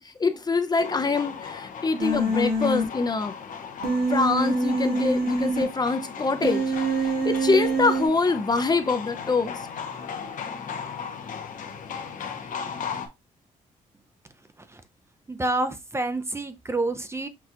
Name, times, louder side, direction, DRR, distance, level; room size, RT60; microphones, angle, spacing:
voice 1, 0.2-3.3 4.1-6.6 7.0-9.6, left 4 dB, 30° left, 0.6 m, -24 dB
sound 1, 0.8-13.1, left 6 dB, 65° left, 0.8 m, -37 dB
Human voice, 2.0-2.8 3.8-5.6 6.4-8.1, right 2 dB, 90° right, 1.3 m, -25 dB
voice 2, 15.3-17.3, right 2 dB, 20° right, 0.5 m, -28 dB
6.0 x 2.3 x 2.8 m
cardioid pair, 80°, 14 cm